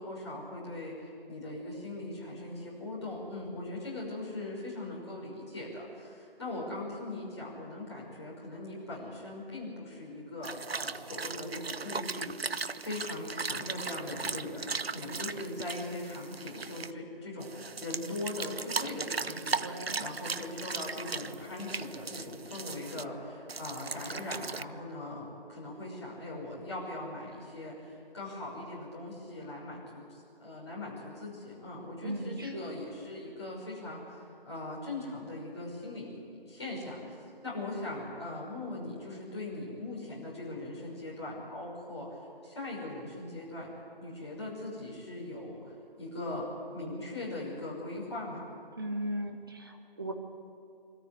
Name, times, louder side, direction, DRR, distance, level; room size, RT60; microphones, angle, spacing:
voice 1, 0.0-37.1 37.4-42.1 42.4-43.7 44.0-48.5, left 2 dB, 30° left, -5 dB, 5.9 m, -40 dB
sound 1, 10.4-16.9 17.4-23.0 23.5-24.6, right 4 dB, 80° right, 0.7 m, -38 dB
voice 2, 19.6-20.1 32.0-32.6 48.8-50.1, right 1 dB, 25° right, 3 dB, 1.3 m, -37 dB
23.5 x 14.0 x 9.8 m, 2.4 s
figure-of-eight pair, 165°, 30 cm